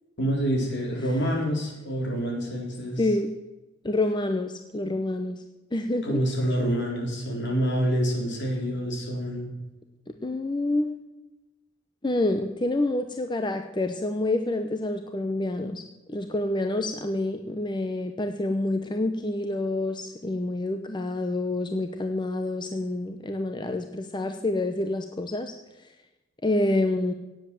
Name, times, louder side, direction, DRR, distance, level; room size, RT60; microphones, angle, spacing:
voice 1, 0.2-3.0 6.0-9.5, equal, 60° left, 0 dB, 4.1 m, -27 dB
voice 2, 3.0-3.3 3.8-5.4 5.7-6.2 10.2-10.9 12.0-15.8 16.1-25.5 26.4-27.1, left 2 dB, 25° left, 6 dB, 0.7 m, -27 dB
17.5 x 7.9 x 7.7 m, 1.0 s
head